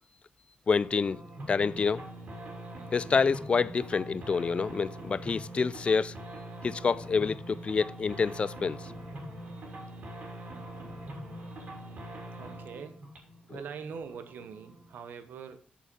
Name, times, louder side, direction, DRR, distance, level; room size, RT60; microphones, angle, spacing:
voice 1, 0.7-1.2 1.5-2.1 2.9-6.1 6.6-8.9, left 5 dB, 40° left, 0.4 m, -27 dB
sound 1, 0.8-14.9, right 1 dB, 55° right, 2.9 m, -43 dB
voice 2, 12.4-13.1 13.4-15.6, right 6 dB, 85° right, 1.0 m, -43 dB
6.6 x 6.4 x 5.3 m
cardioid pair, 110°, 3 cm